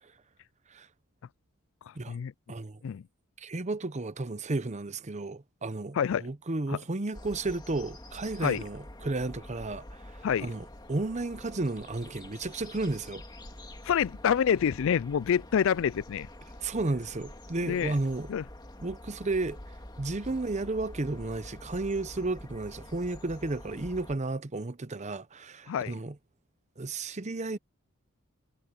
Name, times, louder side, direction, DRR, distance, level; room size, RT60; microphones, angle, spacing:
voice 1, 1.9-2.3 2.8-3.0 5.9-6.3 6.7-6.8 8.4-8.6 10.2-10.5 13.8-16.3 17.6-17.9 18.3-18.4 25.7-26.0, left 8 dB, 60° left, 0.3 m, -27 dB
voice 2, 2.5-2.8 3.4-9.8 10.2-13.2 16.6-18.3 18.8-19.6 20.0-26.1 26.8-27.6, right 2 dB, 35° right, 0.8 m, -33 dB
sound 1, 7.1-24.2, left 1 dB, 20° left, 2.2 m, -47 dB
head